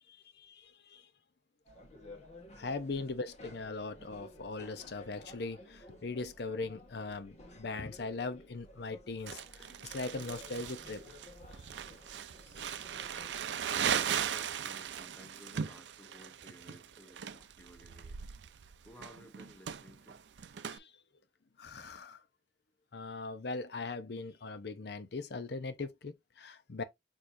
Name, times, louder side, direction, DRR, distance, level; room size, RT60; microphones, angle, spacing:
voice 1, 0.1-1.1 2.5-11.2 20.7-21.0 21.6-22.2 22.9-26.8, left 3 dB, 65° left, 0.7 m, -40 dB
sound 1, 1.6-13.5, left 1 dB, 40° left, 1.4 m, -54 dB
Crumpling crinkling, 9.3-20.8, right 8 dB, 80° right, 0.5 m, -38 dB
voice 2, 13.8-18.2 18.8-20.2, equal, 10° left, 1.0 m, -54 dB
6.5 x 3.0 x 2.6 m
head